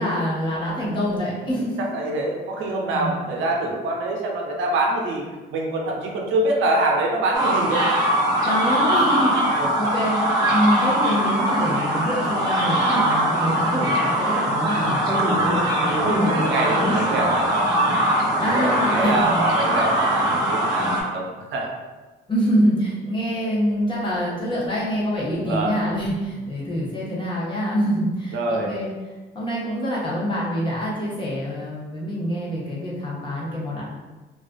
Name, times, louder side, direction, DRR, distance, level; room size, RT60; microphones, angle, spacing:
voice 1, 0.0-1.8 2.9-3.2 8.4-15.0 18.4-19.5 22.3-28.9 29.3-33.8, equal, 25° left, -7 dB, 0.9 m, -25 dB
voice 2, 1.9-5.2 5.5-7.8 9.6-9.7 15.3-15.6 15.9-17.7 18.5-21.3 21.5-21.7 25.4-25.7 28.3-28.7, right 2 dB, 80° right, 0 dB, 0.5 m, -25 dB
sound 1, 7.3-21.0, right 1 dB, 20° right, 0.7 m, -21 dB
2.4 x 2.3 x 2.2 m, 1.2 s
cardioid pair, 90°, 20 cm